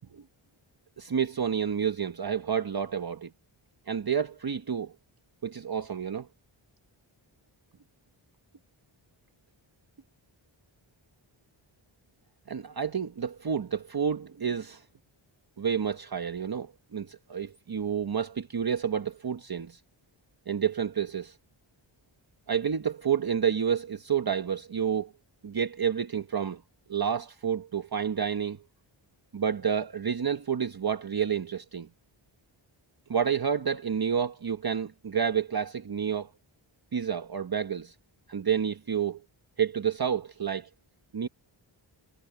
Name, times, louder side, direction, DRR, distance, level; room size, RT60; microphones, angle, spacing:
voice 1, 1.0-3.3 3.9-4.9 5.4-6.3 12.5-14.8 15.6-19.8 20.5-21.4 22.5-25.1 25.4-26.6 26.9-28.6 29.3-31.9 33.1-36.3 36.9-37.9 38.3-39.2 39.6-40.7 41.1-41.3, right 7 dB, 45° right, 1.2 m, -29 dB
wide cardioid pair, 80°, 49 cm